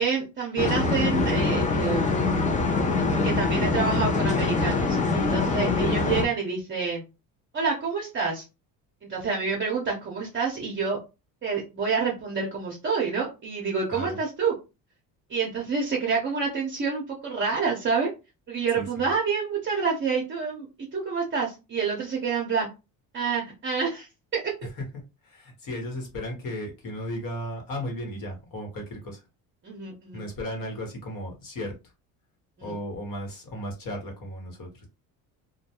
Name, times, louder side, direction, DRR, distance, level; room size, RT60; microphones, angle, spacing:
voice 1, 0.0-2.4 3.1-7.0 7.5-8.4 9.0-11.0 11.4-14.5 15.3-18.1 18.5-20.7 20.9-22.7 23.1-24.5 29.6-30.2 32.6-32.7, right 5 dB, 30° right, -2 dB, 0.7 m, -28 dB
sound 1, 0.6-6.2, left 3 dB, 20° left, 0.5 m, -24 dB
voice 2, 18.7-19.1 25.2-29.2 30.1-31.7 32.6-34.9, equal, 55° left, 2 dB, 1.1 m, -35 dB
2.3 x 2.2 x 2.8 m, 0.28 s
cardioid pair, 100°, 39 cm